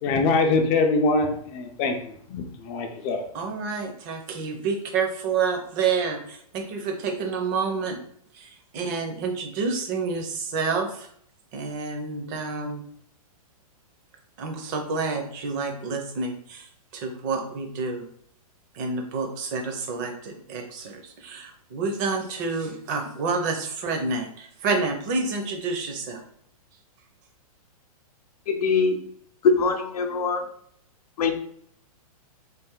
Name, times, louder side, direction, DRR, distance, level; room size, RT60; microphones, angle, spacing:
voice 1, 0.0-3.2, left 3 dB, 20° left, 5 dB, 0.3 m, -24 dB
voice 2, 3.3-8.0 8.3-11.1 11.5-12.8 14.4-18.0 18.7-26.2, right 4 dB, 30° right, 4 dB, 0.6 m, -29 dB
voice 3, 28.5-29.0 29.4-30.4 31.2-31.3, left 4 dB, 80° left, 6 dB, 0.6 m, -22 dB
3.3 x 2.5 x 3.6 m, 0.66 s
hypercardioid pair, 155°, 19 cm